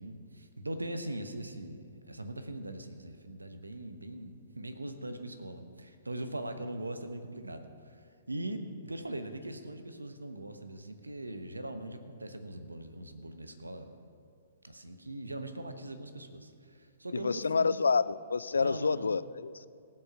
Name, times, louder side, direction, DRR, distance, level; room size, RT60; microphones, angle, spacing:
voice 1, 0.0-8.0 8.3-13.9 14.6-17.8 18.6-19.1, right 1 dB, 80° right, 8 dB, 1.0 m, -41 dB
voice 2, 17.1-19.6, left 5 dB, 70° left, 18 dB, 0.3 m, -28 dB
18.0 x 7.6 x 5.8 m, 2.3 s
figure-of-eight pair, 115°, 0 cm